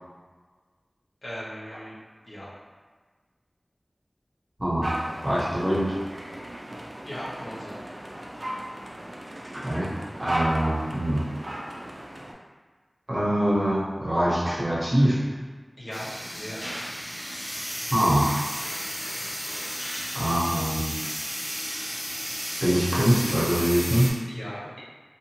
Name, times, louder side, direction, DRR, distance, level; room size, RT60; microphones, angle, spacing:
voice 1, 1.2-2.0 2.2-2.5 7.0-7.8 15.8-16.6 24.3-24.7, equal, 85° left, -10 dB, 1.0 m, -38 dB
voice 2, 4.6-5.9 9.5-9.9 10.2-11.2 13.1-15.2 17.9-18.5 20.1-21.0 22.6-24.1, right 1 dB, 35° right, -9 dB, 1.0 m, -24 dB
sound 1, 4.8-12.3, right 1 dB, 55° right, 0.4 m, -35 dB
sound 2, 15.9-24.1, equal, 5° right, 0.6 m, -33 dB
2.6 x 2.4 x 2.9 m, 1.4 s
wide cardioid pair, 50°, 0 cm